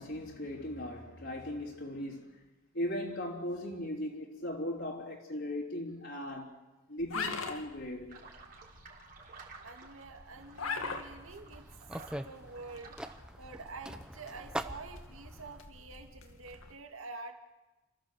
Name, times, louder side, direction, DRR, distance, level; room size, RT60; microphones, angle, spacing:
voice 1, 0.0-2.4 2.7-6.6 6.9-8.2, left 1 dB, 55° left, 3.3 m, -38 dB
sound 1, 7.0-16.8, left 4 dB, 75° left, 2.2 m, -44 dB
sound 2, 8.1-13.2, right 4 dB, 40° right, 3.6 m, -54 dB
voice 2, 9.6-11.7 12.2-17.3, right 3 dB, 75° right, 2.2 m, -47 dB
sound 3, 10.3-15.6, right 1 dB, 5° right, 0.7 m, -44 dB
29.5 x 14.5 x 7.6 m
head